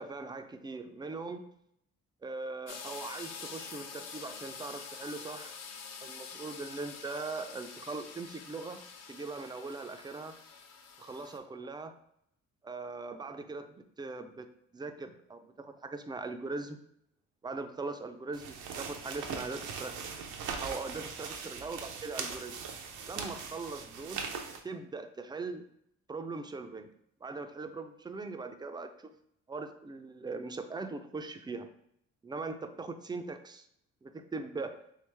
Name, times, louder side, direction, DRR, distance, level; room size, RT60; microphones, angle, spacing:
voice 1, 0.0-1.5 2.2-5.6 6.0-8.8 9.1-10.4 11.0-11.9 12.6-14.5 14.7-16.8 17.4-20.1 20.6-22.6 23.1-24.3 24.6-25.7 26.1-26.9 27.2-29.1 29.5-31.7 32.2-33.7 34.0-34.8, right 3 dB, 15° right, 8 dB, 0.3 m, -40 dB
sound 1, 2.7-11.4, left 5 dB, 60° left, 0.6 m, -46 dB
sound 2, 18.3-24.6, right 5 dB, 85° right, 0.6 m, -40 dB
3.4 x 3.2 x 3.3 m, 0.73 s
cardioid pair, 90°, 30 cm